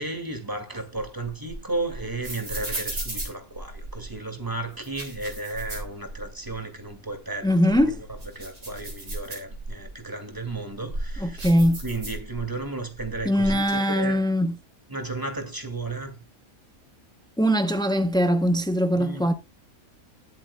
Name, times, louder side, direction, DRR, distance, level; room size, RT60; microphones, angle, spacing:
voice 1, 0.0-7.6 7.8-7.9 8.4-11.5 11.8-14.3 14.9-16.2 18.9-19.3, right 2 dB, 15° right, 2.1 m, -33 dB
sound 1, 0.7-4.1 4.7-6.5 6.9-7.0 7.5-9.9 10.5-12.6 12.9-13.7, right 1 dB, 60° right, 4.0 m, -35 dB
voice 2, 7.4-8.0 11.2-11.8 13.3-14.5 17.4-19.3, equal, 5° left, 0.3 m, -21 dB
20.0 x 7.6 x 2.2 m
omnidirectional pair, 1.5 m